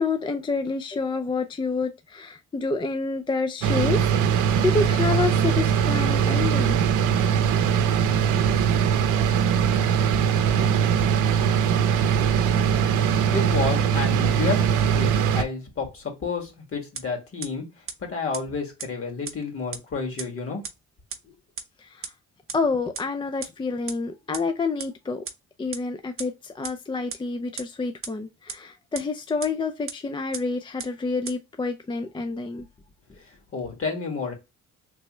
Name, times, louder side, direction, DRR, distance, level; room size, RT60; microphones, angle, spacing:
voice 1, 0.0-6.8 10.6-10.7 21.8-22.1 22.5-25.2 25.6-32.7, left 4 dB, 15° left, 0.4 m, -28 dB
sound 1, 3.6-15.4, right 8 dB, 85° right, 0.6 m, -21 dB
voice 2, 13.3-20.6 21.3-21.4 33.2-34.3, left 4 dB, 45° left, 1.8 m, -30 dB
sound 2, 17.0-17.1 17.4-17.5 17.9-18.0 18.3-18.4 18.8-18.9 19.3-19.4 19.7-19.8 20.2-20.3 20.6-20.7 21.1-21.2 21.6-21.7 22.0-22.1 22.5-22.6 23.0-23.1 23.4-23.5 23.9-24.0 24.3-24.4 24.8-24.9 25.3-25.4 25.7-25.8 26.2-26.3 26.6-26.7 27.1-27.2 27.6-27.7 28.0-28.1 28.5-28.6 29.0-29.1 29.4-29.5 29.9-30.0 30.3-30.4 30.8-30.9 31.3-31.4, right 6 dB, 45° right, 0.8 m, -33 dB
3.3 x 3.1 x 3.0 m
cardioid pair, 90°, 30 cm